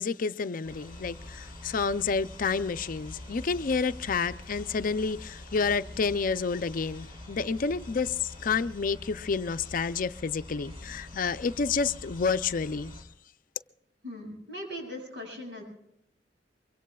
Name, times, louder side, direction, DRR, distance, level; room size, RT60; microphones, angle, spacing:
voice 1, 0.0-13.1, left 5 dB, 50° left, 0.5 m, -29 dB
sound 1, 0.6-13.0, left 1 dB, 35° right, 4.7 m, -45 dB
voice 2, 14.0-15.6, equal, 80° right, 7.9 m, -39 dB
24.5 x 23.5 x 2.3 m
head